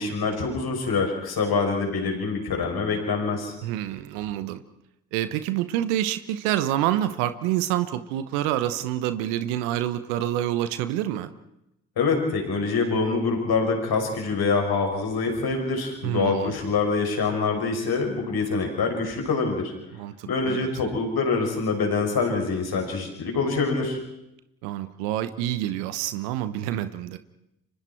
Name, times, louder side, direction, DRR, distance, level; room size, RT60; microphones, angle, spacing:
voice 1, 0.0-3.5 12.0-19.7 20.2-24.0, left 4 dB, 65° left, 2 dB, 6.2 m, -25 dB
voice 2, 3.6-4.6 5.1-11.3 16.0-16.5 20.0-20.7 24.6-27.2, right 12 dB, 85° right, 12 dB, 1.0 m, -27 dB
29.0 x 25.0 x 4.5 m, 0.84 s
hypercardioid pair, 40°, 40 cm